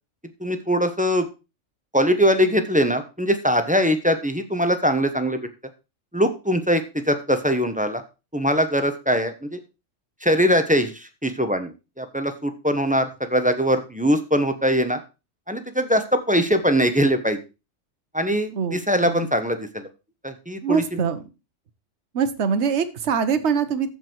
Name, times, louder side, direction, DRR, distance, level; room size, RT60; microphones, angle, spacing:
voice 1, 0.4-1.3 1.9-5.4 6.1-8.0 8.3-9.6 10.2-11.7 12.0-15.0 15.5-17.4 18.1-19.8 20.2-20.8, equal, 5° right, 8 dB, 1.1 m, -21 dB
voice 2, 18.5-19.3 20.6-21.2 22.1-23.9, right 6 dB, 65° right, 11 dB, 1.3 m, -23 dB
14.0 x 5.4 x 4.6 m, 0.29 s
omnidirectional pair, 1.3 m